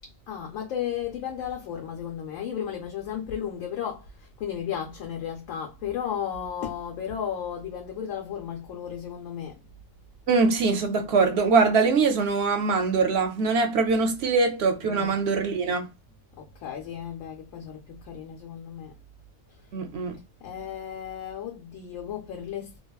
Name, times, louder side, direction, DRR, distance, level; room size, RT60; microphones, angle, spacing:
voice 1, 0.3-9.6 14.8-15.2 16.4-19.0 20.4-22.8, left 9 dB, 75° left, 0.9 m, -34 dB
voice 2, 10.3-15.9 19.7-20.2, right 4 dB, 65° right, 0.7 m, -23 dB
2.7 x 2.3 x 2.2 m
omnidirectional pair, 1.4 m